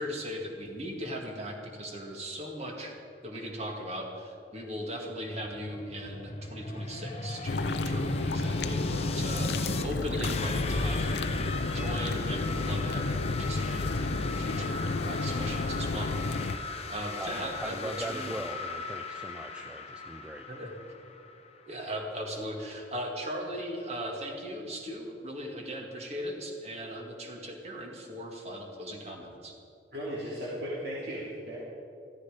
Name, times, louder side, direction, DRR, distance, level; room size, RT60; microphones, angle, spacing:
voice 1, 0.0-16.1 16.5-18.3 20.5-20.7 21.7-29.5, equal, 35° right, 1 dB, 2.0 m, -38 dB
sound 1, 5.4-9.9 10.2-21.8, left 3 dB, 35° left, 0.8 m, -38 dB
sound 2, 7.4-16.6, left 2 dB, 60° left, 0.6 m, -31 dB
voice 2, 17.6-20.5, right 1 dB, 5° right, 7 dB, 0.4 m, -40 dB
voice 3, 29.9-31.6, equal, 60° right, -7 dB, 2.8 m, -36 dB
14.5 x 14.0 x 5.1 m, 2.6 s
head